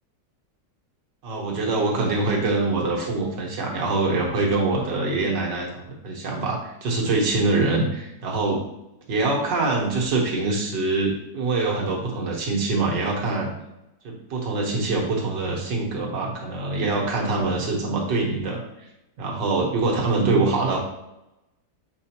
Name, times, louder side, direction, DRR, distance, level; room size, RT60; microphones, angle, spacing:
voice 1, 1.2-8.6 9.1-13.5 14.0-18.6 19.2-20.8, right 3 dB, 90° right, -1 dB, 1.9 m, -24 dB
7.5 x 4.4 x 2.9 m, 0.89 s
omnidirectional pair, 1.9 m